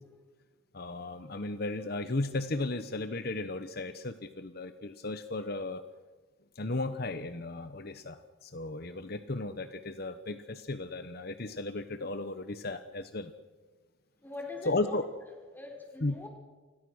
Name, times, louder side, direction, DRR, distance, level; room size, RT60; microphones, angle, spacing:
voice 1, 0.7-5.8 6.5-13.3 14.7-15.1 16.0-16.1, left 2 dB, 50° left, 10 dB, 1.0 m, -35 dB
voice 2, 14.2-15.0 15.5-16.3, left 3 dB, 10° left, 2 dB, 4.7 m, -43 dB
29.0 x 21.0 x 6.4 m, 1.3 s
head